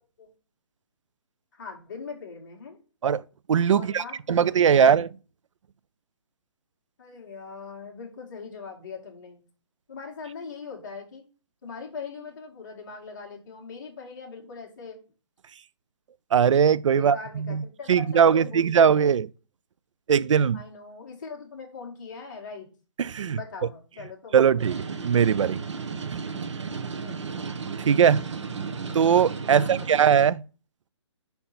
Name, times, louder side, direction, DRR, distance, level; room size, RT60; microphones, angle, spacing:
voice 1, 1.5-2.8 3.8-4.9 7.0-9.5 9.9-11.2 11.6-15.0 16.9-18.9 20.5-22.7 23.4-24.8 27.0-27.2 29.5-30.1, left 5 dB, 40° left, 1.9 m, -41 dB
voice 2, 3.5-5.1 16.3-17.6 17.9-19.3 20.1-20.6 23.0-23.4 24.3-25.6 27.8-28.2 28.9-30.4, right 7 dB, 90° right, 0.4 m, -20 dB
sound 1, 24.6-30.3, right 5 dB, 70° right, 1.2 m, -34 dB
5.3 x 4.3 x 5.8 m
hypercardioid pair, 175°, 16 cm